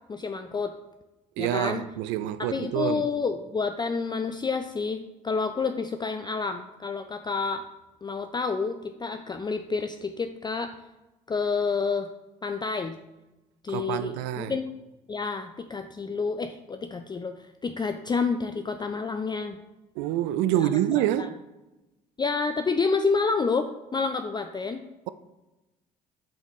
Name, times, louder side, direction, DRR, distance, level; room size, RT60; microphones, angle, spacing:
voice 1, 0.1-0.7 1.4-1.8 2.4-7.6 8.0-10.7 11.3-12.1 12.4-13.0 13.6-14.6 15.1-19.6 20.6-21.3 22.2-24.8, left 4 dB, 20° left, 0.4 m, -29 dB
voice 2, 1.4-3.0 13.7-14.6 20.0-21.3, right 12 dB, 70° right, 0.4 m, -27 dB
8.6 x 4.0 x 3.1 m
hypercardioid pair, 60°, 20 cm